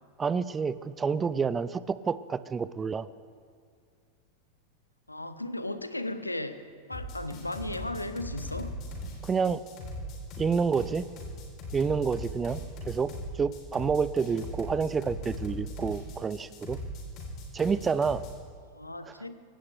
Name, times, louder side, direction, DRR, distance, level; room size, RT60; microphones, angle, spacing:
voice 1, 0.2-3.1 9.2-9.6 10.4-11.0 11.7-13.1 13.4-16.8 17.5-18.2 19.1-19.2, right 5 dB, 20° right, 16 dB, 0.5 m, -28 dB
voice 2, 5.1-8.8 18.7-19.4, left 1 dB, 85° left, 11 dB, 1.0 m, -36 dB
sound 1, 6.9-18.3, left 1 dB, 35° left, 3.8 m, -39 dB
24.0 x 17.0 x 3.4 m, 2.1 s
figure-of-eight pair, 90°, 0 cm